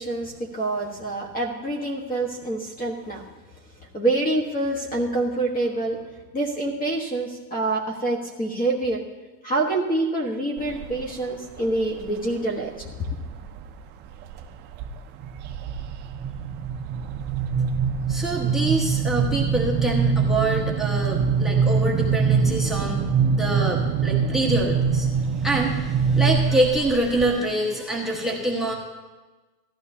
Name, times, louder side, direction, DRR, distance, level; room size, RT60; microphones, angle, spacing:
voice 1, 0.0-3.2 3.9-6.0 6.3-9.0 9.4-12.9, right 2 dB, 20° left, 2 dB, 1.2 m, -26 dB
sound 1, 10.6-11.1 11.6-12.1 12.8-13.7 14.0-14.4 14.7-27.3, right 6 dB, 25° right, 0.3 m, -24 dB
voice 2, 18.1-23.0 23.4-25.1 25.4-28.7, right 1 dB, ahead, 0 dB, 1.3 m, -25 dB
16.0 x 12.0 x 2.8 m, 1.2 s
supercardioid pair, 140°, 48 cm